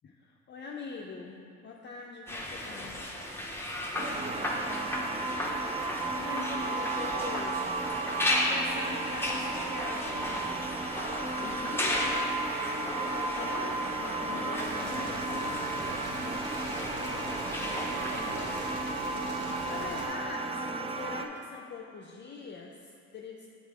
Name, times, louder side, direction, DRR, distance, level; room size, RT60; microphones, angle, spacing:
voice 1, 0.0-3.0 6.1-7.8 8.2-10.6 11.3-12.4 12.8-15.7 19.6-23.5, left 4 dB, 35° left, -1 dB, 0.5 m, -43 dB
sound 1, 2.3-18.7, left 1 dB, 10° left, 0.7 m, -35 dB
sound 2, 3.9-21.3, right 3 dB, 20° right, 0.4 m, -34 dB
voice 2, 4.0-5.6 17.6-19.6, right 3 dB, 75° right, 0 dB, 1.0 m, -47 dB
Boiling, 14.6-20.1, right 1 dB, 35° right, 1.1 m, -42 dB
7.3 x 3.6 x 4.7 m, 2.4 s
cardioid pair, 90°, 30 cm